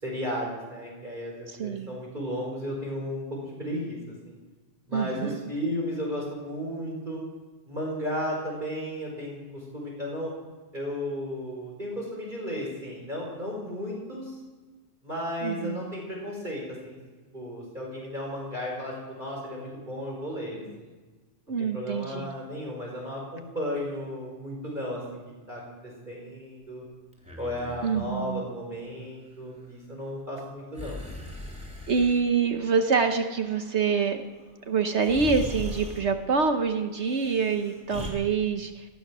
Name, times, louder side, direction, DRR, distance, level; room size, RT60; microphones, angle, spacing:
voice 1, 0.0-4.3 4.9-7.2 7.7-10.3 10.7-14.3 15.0-17.0 17.3-20.9 21.6-25.2 25.5-25.6 26.1-26.8 27.4-31.0, equal, 40° right, -3 dB, 4.9 m, -34 dB
voice 2, 1.5-2.0 4.9-5.4 15.4-15.9 21.5-22.3 27.8-28.5 31.9-34.3 34.7-38.9, right 5 dB, 65° right, 6 dB, 1.3 m, -26 dB
Breathing, 27.1-28.0 30.7-32.2 34.4-34.5 35.0-36.1 37.0-38.1, left 1 dB, 5° right, 3.4 m, -39 dB
18.5 x 12.5 x 6.2 m, 1.3 s
omnidirectional pair, 1.3 m